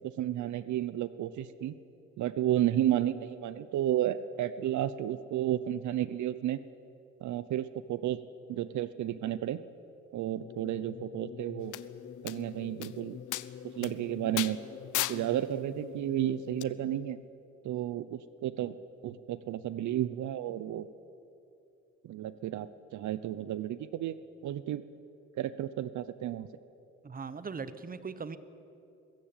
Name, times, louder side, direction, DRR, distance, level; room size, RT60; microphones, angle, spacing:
voice 1, 0.2-1.8 2.2-6.6 7.2-8.2 8.5-9.6 10.1-11.8 12.2-13.2 13.8-14.6 15.1-17.2 17.6-18.8 19.0-20.9 22.0-24.2 24.4-24.8 25.4-26.5, right 12 dB, 70° right, 15 dB, 0.7 m, -32 dB
sound 1, 10.4-17.2, left 8 dB, 45° left, 0.7 m, -46 dB
sound 2, 11.7-11.8 12.3-12.4 12.8-12.9 13.3-13.5 13.8-13.9 14.4-14.5 14.9-15.2 16.6-16.7, left 16 dB, 85° left, 0.7 m, -32 dB
voice 2, 27.0-28.4, right 5 dB, 30° right, 13 dB, 1.1 m, -39 dB
22.5 x 13.5 x 9.0 m, 2.6 s
cardioid pair, 90°, 30 cm